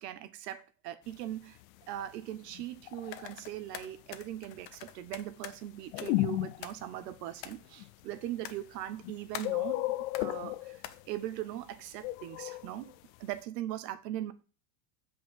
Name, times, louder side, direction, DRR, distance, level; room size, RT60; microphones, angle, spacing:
voice 1, 0.0-1.6 1.9-9.8 10.2-10.8 11.1-12.9 13.2-14.3, right 12 dB, 75° right, 1.3 m, -40 dB
sound 1, 2.3-3.3 5.9-7.0 7.8-7.9 8.9-9.1 9.4-11.1 12.0-12.9, left 18 dB, 60° left, 0.6 m, -33 dB
sound 2, 3.0-5.6 6.0-6.3 6.6-7.0 7.4-7.6 8.4-8.9 9.3-9.7 10.1-10.4 10.8-11.0, left 12 dB, 75° left, 1.3 m, -45 dB
8.0 x 5.1 x 7.1 m
supercardioid pair, 175°, 49 cm